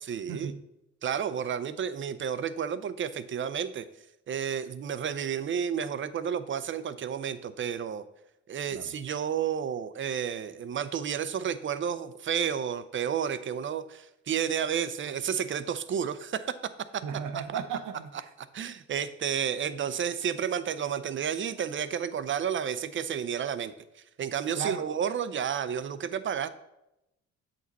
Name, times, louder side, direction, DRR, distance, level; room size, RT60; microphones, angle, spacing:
voice 1, 0.1-0.5 1.0-3.9 4.3-8.0 8.5-16.5 16.9-17.0 18.5-23.7 24.2-26.5, right 8 dB, 40° right, 0.6 m, -31 dB
voice 2, 17.0-18.2 24.5-24.9, right 7 dB, 80° right, 0.8 m, -35 dB
7.7 x 5.1 x 4.1 m
cardioid pair, 90°, 30 cm